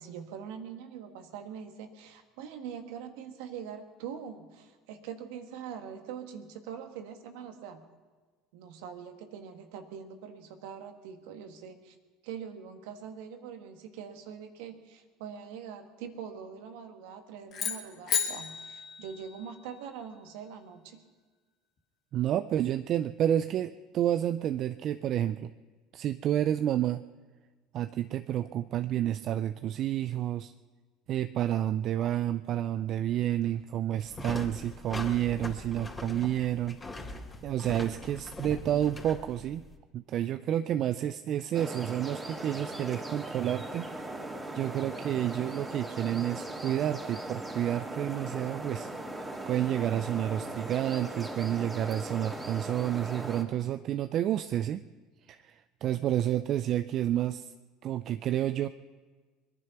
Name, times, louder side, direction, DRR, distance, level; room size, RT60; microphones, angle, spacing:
voice 1, 0.0-7.8 8.5-11.9 12.2-21.0 55.8-56.1, right 7 dB, 75° right, 6 dB, 1.6 m, -43 dB
sound 1, 17.5-19.8, left 8 dB, 55° left, 2.6 m, -34 dB
voice 2, 22.1-25.5 25.9-27.0 27.7-30.5 31.1-36.8 37.1-37.2 37.4-39.6 39.9-44.1 44.5-48.9 49.5-54.8 55.3-57.5 57.8-58.7, right 11 dB, 55° right, 11 dB, 0.5 m, -30 dB
sound 2, 34.0-39.7, left 2 dB, 20° left, 3.1 m, -41 dB
sound 3, 41.5-53.4, right 1 dB, 20° right, 2.7 m, -39 dB
22.5 x 10.5 x 5.9 m, 1.4 s
hypercardioid pair, 80°, 0 cm